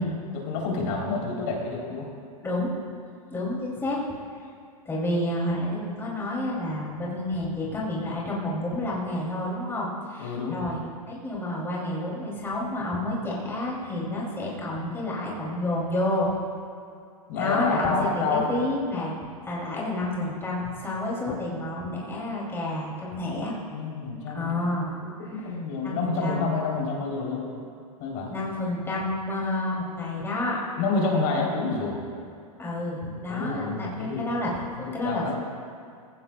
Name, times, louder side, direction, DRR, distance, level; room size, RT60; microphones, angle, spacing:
voice 1, 0.3-2.1 10.2-10.6 17.3-18.5 23.3-23.4 23.7-24.6 25.0-27.5 28.0-28.3 30.8-32.0 33.3-34.2 34.7-35.3, left 4 dB, 50° left, -2 dB, 3.2 m, -28 dB
voice 2, 2.4-2.7 3.3-4.0 4.9-10.8 11.1-16.3 17.4-19.1 19.4-23.5 24.3-25.0 25.8-26.5 28.3-30.6 32.6-35.3, left 1 dB, 15° left, -5 dB, 2.7 m, -29 dB
17.5 x 15.5 x 2.2 m, 2.4 s
hypercardioid pair, 115°, 19 cm